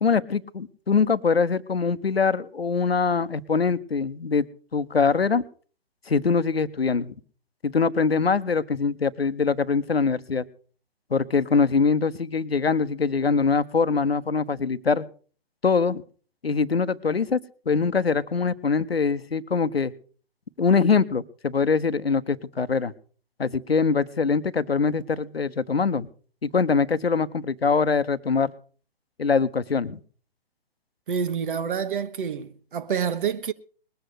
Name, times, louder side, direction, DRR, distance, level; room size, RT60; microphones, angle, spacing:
voice 1, 0.0-4.5 4.7-5.4 6.1-7.1 7.6-10.4 11.1-15.0 15.6-16.0 16.4-17.4 17.7-19.9 20.6-22.9 23.4-26.1 26.4-28.5 29.2-30.0, left 5 dB, 90° left, 0.9 m, -23 dB
voice 2, 31.1-33.5, right 7 dB, 60° right, 1.2 m, -28 dB
20.5 x 8.0 x 6.5 m
figure-of-eight pair, 130°, 30 cm